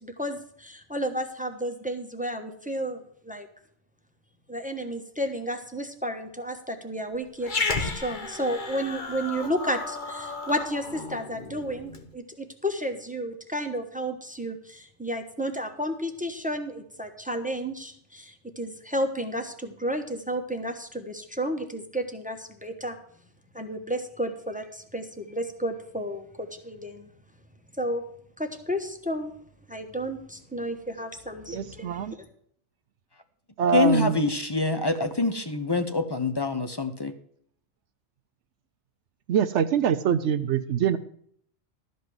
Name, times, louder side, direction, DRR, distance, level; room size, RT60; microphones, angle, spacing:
voice 1, 0.0-3.5 4.5-23.0 23.5-27.1 27.8-28.0 28.4-29.3 29.7-32.2, equal, 5° right, 6 dB, 1.0 m, -32 dB
Growling, 7.4-12.1, left 4 dB, 45° left, 1.3 m, -33 dB
voice 2, 31.5-32.1 33.6-34.2 39.3-41.0, right 8 dB, 80° right, 10 dB, 1.0 m, -24 dB
voice 3, 33.7-37.1, left 3 dB, 25° left, 8 dB, 0.8 m, -25 dB
12.5 x 5.4 x 7.8 m, 0.65 s
omnidirectional pair, 1.2 m